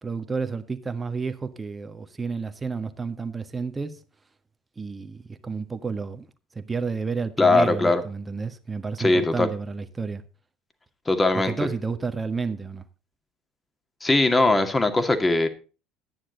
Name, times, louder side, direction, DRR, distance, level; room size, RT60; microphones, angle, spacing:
voice 1, 0.0-4.0 4.8-6.2 6.5-10.2 11.4-12.8, right 4 dB, 20° right, 1.7 m, -31 dB
voice 2, 7.4-8.0 9.0-9.5 11.1-11.5 14.0-15.5, left 2 dB, 15° left, 2.2 m, -20 dB
12.5 x 9.9 x 4.0 m
figure-of-eight pair, 65°, 0 cm